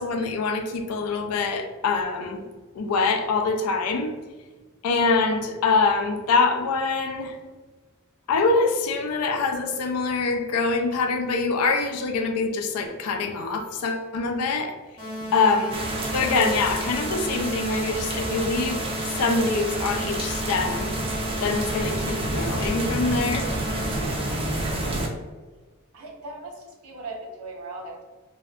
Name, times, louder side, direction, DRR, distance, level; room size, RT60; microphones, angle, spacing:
voice 1, 0.0-2.4 2.8-4.1 4.8-7.4 8.3-14.7 15.3-15.7 16.1-18.9 19.2-20.9 21.4-23.5, left 4 dB, 80° left, 5 dB, 0.4 m, -24 dB
sound 1, 15.0-24.0, right 1 dB, 25° left, 0.7 m, -34 dB
voice 2, 15.1-15.4 23.9-24.3 24.8-25.2 25.9-28.0, right 2 dB, 80° right, 1 dB, 0.6 m, -40 dB
sound 2, 15.7-25.1, right 1 dB, 25° right, 0.3 m, -29 dB
2.6 x 2.1 x 2.3 m, 1.3 s
head